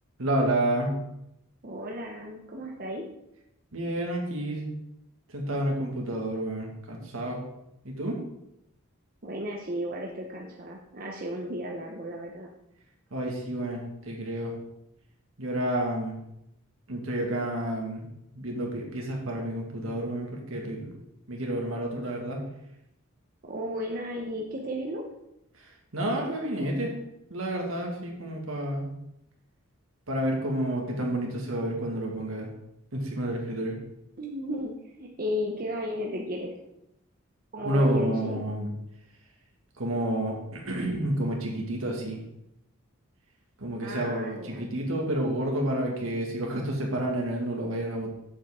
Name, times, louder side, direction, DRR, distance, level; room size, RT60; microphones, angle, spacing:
voice 1, 0.2-1.0 3.7-4.7 5.3-7.4 7.8-8.2 13.1-14.5 15.4-16.2 16.9-18.1 18.3-21.0 21.3-22.4 25.9-26.9 27.3-28.9 30.1-32.5 32.9-33.8 37.6-38.7 39.8-42.2 43.6-48.1, right 1 dB, 80° right, 0 dB, 2.0 m, -30 dB
voice 2, 1.6-3.0 9.2-12.5 23.4-25.0 34.2-36.5 37.5-38.4 43.8-44.7, equal, 45° right, 0 dB, 0.8 m, -34 dB
7.4 x 7.3 x 3.7 m, 0.83 s
head